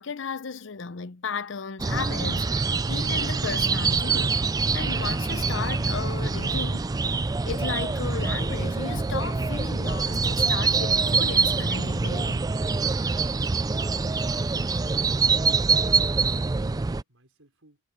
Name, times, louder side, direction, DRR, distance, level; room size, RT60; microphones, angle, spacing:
voice 1, 0.0-6.9 7.5-12.5, left 5 dB, 65° left, 0.7 m, -35 dB
sound 1, 1.8-17.0, right 4 dB, 20° right, 0.3 m, -25 dB
voice 2, 14.9-17.8, right 2 dB, 80° right, 5.3 m, -58 dB
head